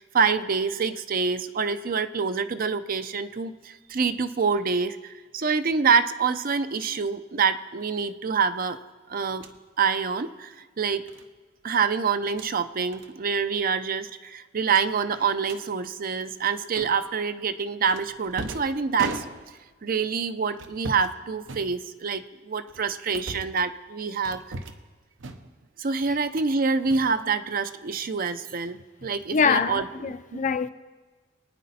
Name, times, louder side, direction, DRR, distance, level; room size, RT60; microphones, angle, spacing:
voice 1, 0.0-8.8 9.1-9.4 9.8-11.1 11.6-19.2 19.8-24.4 25.8-30.4, right 5 dB, 50° right, 0.5 m, -26 dB
sound 1, 9.3-9.6 11.1-11.3 12.2-12.5 12.9-13.1 13.4-13.6 13.9-14.0 14.7-15.6 16.8-17.2 17.9-19.7 20.5-21.2 21.5-22.2 22.7-23.6 24.2-24.9 25.2-25.7 26.0-26.5 26.8-27.7, right 2 dB, 80° right, 0.9 m, -39 dB
voice 2, 29.3-30.7, left 5 dB, 40° left, 0.5 m, -24 dB
23.5 x 9.4 x 4.2 m
head